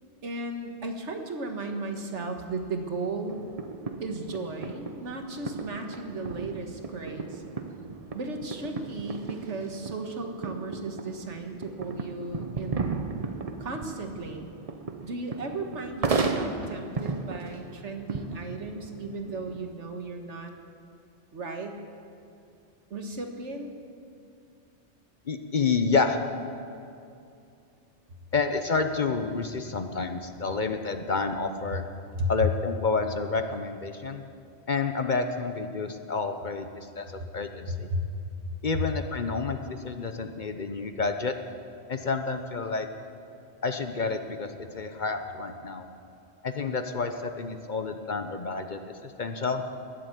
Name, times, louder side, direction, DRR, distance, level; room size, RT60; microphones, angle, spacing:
voice 1, 0.2-3.5 4.0-7.4 8.1-13.2 13.6-14.5 15.0-20.5 21.3-21.8 22.9-23.7 31.7-31.8 32.1-32.5 37.7-38.0 38.7-38.8, right 1 dB, 75° right, 4 dB, 1.7 m, -35 dB
sound 1, 3.3-19.7, right 4 dB, 35° right, 0.8 m, -35 dB
voice 2, 25.3-26.2 28.3-31.8 32.3-34.2 34.7-37.9 38.6-41.3 41.9-42.9 43.6-45.9 46.4-49.6, left 4 dB, 45° left, 7 dB, 0.8 m, -29 dB
21.0 x 7.8 x 8.3 m, 2.6 s
omnidirectional pair, 1.2 m